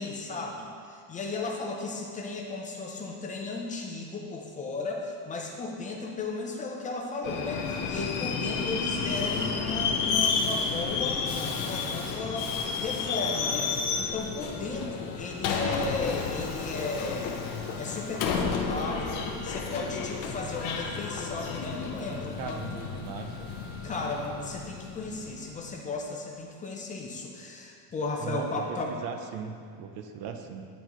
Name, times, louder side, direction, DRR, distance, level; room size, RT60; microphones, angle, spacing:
voice 1, 0.0-17.5 17.8-22.9 23.8-28.9, left 3 dB, 20° left, 0 dB, 0.5 m, -35 dB
Subway metro underground, 7.2-25.7, left 5 dB, 65° left, 0.7 m, -31 dB
voice 2, 22.4-23.5 28.2-30.7, right 6 dB, 80° right, 6 dB, 0.7 m, -38 dB
10.0 x 4.0 x 3.0 m, 2.3 s
cardioid pair, 165°, 36 cm